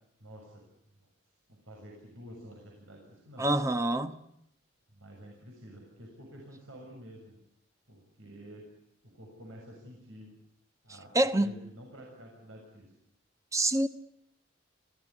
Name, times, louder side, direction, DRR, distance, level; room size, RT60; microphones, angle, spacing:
voice 1, 0.2-0.7 1.5-3.5 4.9-7.4 7.9-8.6 9.0-10.4 10.8-12.9, equal, 85° right, 6.9 m, -49 dB
voice 2, 3.4-4.1 11.1-11.5 13.5-13.9, right 1 dB, 15° right, 1.1 m, -26 dB
27.0 x 17.0 x 9.7 m
head